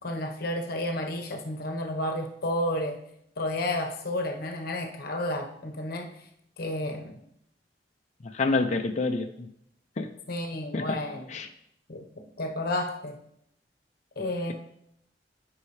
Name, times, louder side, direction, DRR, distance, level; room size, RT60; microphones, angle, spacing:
voice 1, 0.0-3.0 3.4-6.1 6.6-7.2 10.3-11.3 11.9-13.2 14.2-14.5, left 1 dB, 60° left, 4 dB, 1.1 m, -31 dB
voice 2, 8.3-9.5 10.0-10.1 10.7-11.0 11.3-11.5, left 3 dB, 40° left, 5 dB, 0.5 m, -27 dB
11.5 x 5.5 x 3.3 m, 0.75 s
head